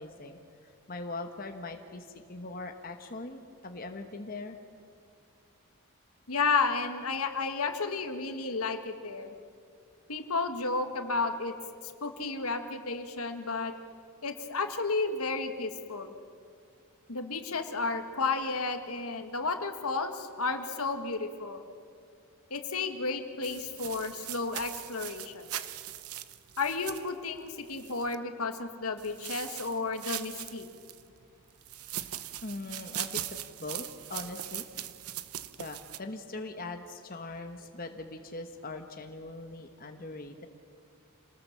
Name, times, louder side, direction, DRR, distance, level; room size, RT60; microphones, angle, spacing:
voice 1, 0.0-4.6 32.4-33.2 33.6-34.7 35.6-40.5, left 2 dB, 40° left, 5 dB, 1.1 m, -41 dB
voice 2, 6.3-9.3 10.1-11.6 12.0-13.7 14.2-16.1 17.1-21.6 22.5-25.5 26.6-30.7, left 4 dB, 85° left, 7 dB, 1.7 m, -32 dB
sound 1, 23.4-28.1 29.0-31.0 31.6-36.0, right 12 dB, 85° right, 0.8 m, -40 dB
26.5 x 19.0 x 7.5 m, 2.3 s
head